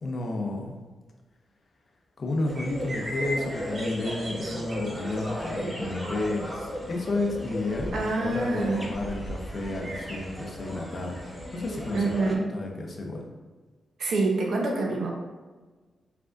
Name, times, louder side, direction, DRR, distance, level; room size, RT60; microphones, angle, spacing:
voice 1, 0.0-0.7 2.2-13.3, left 2 dB, 45° left, 1 dB, 0.6 m, -31 dB
sound 1, 2.4-12.4, equal, 5° right, 0.8 m, -37 dB
sound 2, 2.5-10.2, right 1 dB, 40° right, 0.9 m, -40 dB
voice 2, 7.9-8.8 11.9-12.4 14.0-15.1, right 2 dB, 65° right, 0 dB, 0.7 m, -26 dB
5.0 x 3.4 x 2.4 m, 1.3 s
wide cardioid pair, 150°, 0 cm